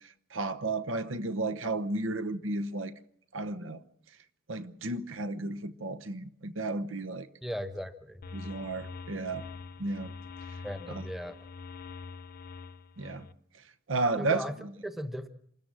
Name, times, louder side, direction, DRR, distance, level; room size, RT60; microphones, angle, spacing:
voice 1, 0.3-2.9 3.3-3.8 4.5-7.3 8.3-9.5 9.8-10.1 10.9-11.1 13.0-13.3 13.9-14.7, right 2 dB, 80° right, 1.0 m, -33 dB
voice 2, 7.4-8.2 10.6-11.4 14.2-14.5 14.8-15.3, equal, ahead, 1.0 m, -37 dB
sound 1, 8.2-13.3, left 4 dB, 50° left, 0.8 m, -44 dB
26.5 x 13.5 x 7.6 m
head